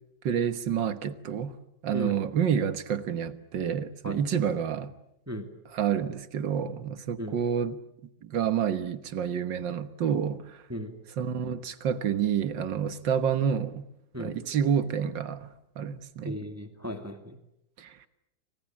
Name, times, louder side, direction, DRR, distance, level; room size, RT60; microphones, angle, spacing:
voice 1, 0.2-1.6 1.8-4.9 5.7-7.8 8.2-10.6 11.2-13.8 14.2-15.5 15.8-16.4 17.8-18.0, right 8 dB, 75° right, 11 dB, 2.0 m, -28 dB
voice 2, 16.2-17.4, equal, 10° right, 6 dB, 2.2 m, -36 dB
29.5 x 25.0 x 7.4 m, 0.81 s
omnidirectional pair, 2.0 m